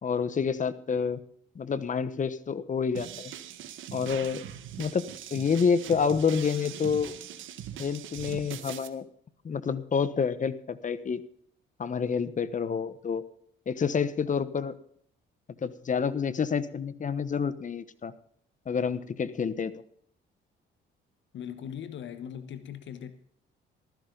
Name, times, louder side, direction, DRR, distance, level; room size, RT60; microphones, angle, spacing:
voice 1, 0.0-1.2 1.5-3.3 3.9-4.4 4.8-5.0 5.3-7.1 7.8-9.0 9.4-11.2 11.8-13.2 13.7-14.7 15.6-18.1 18.7-19.7, left 6 dB, 40° left, 1.1 m, -28 dB
sound 1, 2.9-8.9, right 10 dB, 80° right, 1.4 m, -41 dB
voice 2, 21.3-23.1, left 9 dB, 70° left, 1.3 m, -39 dB
15.0 x 13.5 x 3.9 m
cardioid pair, 90°, 20 cm